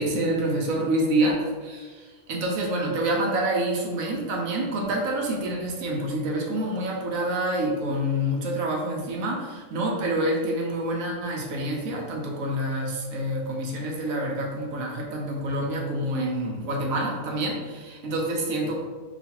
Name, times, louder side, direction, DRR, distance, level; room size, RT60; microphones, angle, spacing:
voice 1, 0.0-18.9, right 1 dB, 90° right, -1 dB, 1.0 m, -27 dB
2.9 x 2.4 x 2.8 m, 1.4 s
omnidirectional pair, 1.4 m